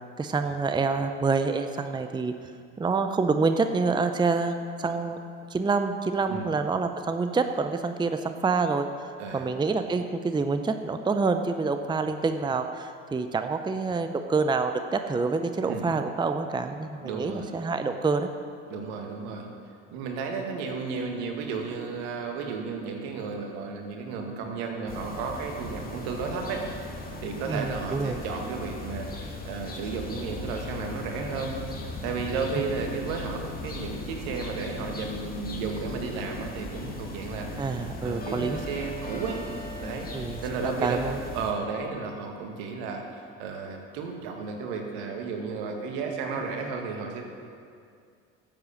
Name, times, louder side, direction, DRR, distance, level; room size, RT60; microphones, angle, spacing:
voice 1, 0.2-2.3 2.8-5.2 5.5-8.9 9.3-18.3 27.5-28.2 37.6-38.6 40.1-40.4 40.8-41.2, right 4 dB, 15° right, 8 dB, 0.7 m, -27 dB
voice 2, 9.2-9.5 15.7-15.9 17.0-17.5 18.7-19.5 19.9-26.7 27.2-31.6 32.0-39.4 39.8-41.1 41.3-47.3, right 4 dB, 70° right, 2 dB, 2.0 m, -33 dB
sound 1, 24.9-41.5, left 2 dB, 25° left, 2.2 m, -38 dB
12.0 x 7.9 x 7.1 m, 2.3 s
hypercardioid pair, 75°, 35 cm